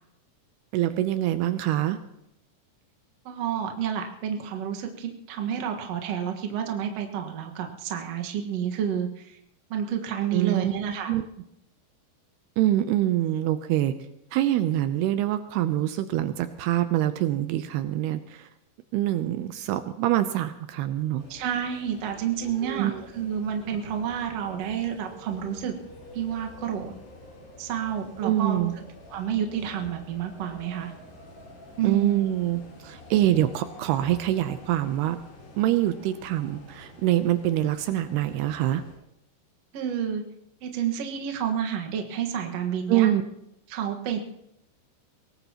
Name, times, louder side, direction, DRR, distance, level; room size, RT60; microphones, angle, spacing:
voice 1, 0.7-2.0 10.3-10.7 11.1-11.3 12.6-14.0 14.3-18.5 18.9-21.2 22.6-23.0 28.2-28.7 31.8-35.2 35.6-38.8 42.9-43.2, right 13 dB, 80° right, 10 dB, 2.6 m, -25 dB
voice 2, 3.3-9.4 9.7-11.1 21.3-25.7 26.1-26.9 27.6-28.7 29.1-30.9 31.8-32.2 39.7-40.2 40.6-43.1 43.7-44.2, right 8 dB, 55° right, 3 dB, 1.9 m, -30 dB
sound 1, 21.2-39.0, left 1 dB, 70° left, 5.8 m, -48 dB
23.0 x 18.0 x 2.9 m, 0.80 s
omnidirectional pair, 4.8 m